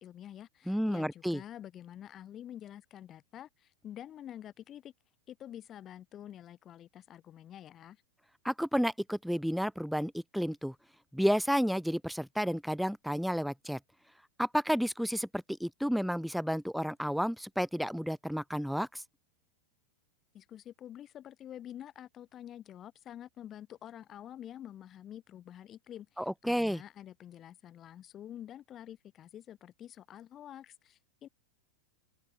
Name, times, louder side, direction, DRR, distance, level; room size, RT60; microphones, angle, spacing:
voice 1, 0.0-4.9 5.3-8.0 20.3-31.3, left 11 dB, 30° left, 6.2 m, -48 dB
voice 2, 0.7-1.4 8.4-10.7 11.1-13.8 14.4-19.0 26.2-26.8, equal, ahead, 1.3 m, -31 dB
open air
figure-of-eight pair, 90°, 0 cm